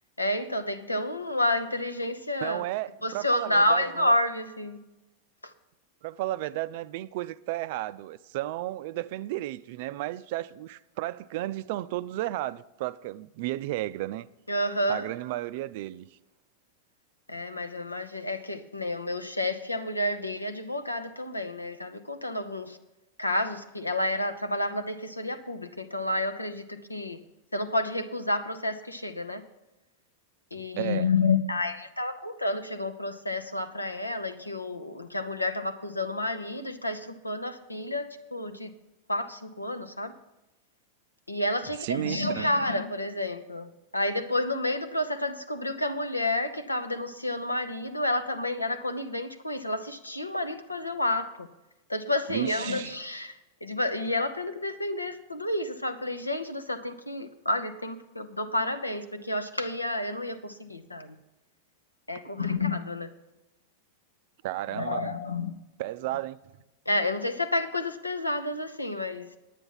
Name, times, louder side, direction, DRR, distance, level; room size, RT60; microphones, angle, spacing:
voice 1, 0.2-2.6 3.0-4.8 5.4-5.5 14.5-15.0 17.3-22.8 23.2-27.2 27.5-29.4 30.5-38.7 39.1-40.1 41.3-51.5 51.9-61.2 62.1-63.1 64.7-65.6 66.9-69.3, left 2 dB, 85° left, 0.8 m, -30 dB
voice 2, 2.4-4.2 6.0-14.3 14.9-16.1 30.8-31.1 41.8-42.5 52.3-52.9 64.4-65.1 65.8-66.4, right 16 dB, 50° right, 0.4 m, -33 dB
9.8 x 9.2 x 5.6 m
figure-of-eight pair, 90°, 0 cm